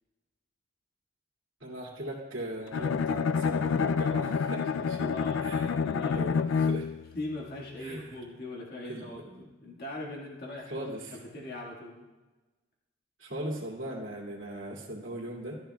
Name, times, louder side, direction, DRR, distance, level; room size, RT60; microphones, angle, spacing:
voice 1, 1.6-5.1 5.4-5.8 6.1-6.9 7.8-8.1 8.9-9.5 10.7-11.2 13.2-15.6, right 1 dB, 75° right, -4 dB, 2.5 m, -39 dB
Bowed string instrument, 2.7-7.1, left 5 dB, 85° left, 0.4 m, -28 dB
voice 2, 4.9-6.3 7.1-12.1, left 1 dB, 55° left, -3 dB, 1.9 m, -41 dB
13.5 x 13.5 x 2.3 m, 1.2 s
head